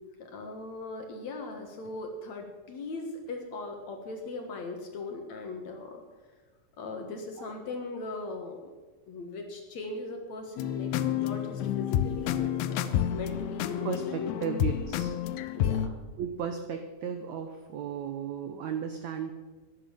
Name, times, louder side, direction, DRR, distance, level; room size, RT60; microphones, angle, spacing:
voice 1, 0.2-6.0 6.8-8.7 9.1-14.4 15.5-15.9, left 3 dB, 55° left, 3 dB, 2.3 m, -39 dB
sound 1, 10.6-15.9, left 10 dB, 80° left, 2.7 m, -29 dB
voice 2, 13.8-15.1 16.2-19.3, right 7 dB, 80° right, 7 dB, 1.6 m, -35 dB
13.0 x 11.0 x 7.2 m, 1.3 s
omnidirectional pair, 4.5 m